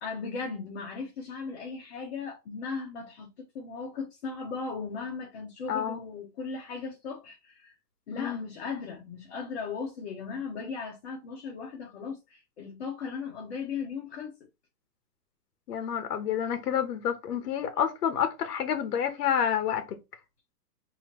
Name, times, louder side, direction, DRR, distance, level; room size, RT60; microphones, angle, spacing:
voice 1, 0.0-7.8 8.1-14.4, left 5 dB, 40° left, 0.9 m, -37 dB
voice 2, 5.7-6.0 8.2-8.4 15.7-19.8, left 8 dB, 65° left, 1.0 m, -29 dB
4.4 x 2.8 x 2.9 m
hypercardioid pair, 150°, 50 cm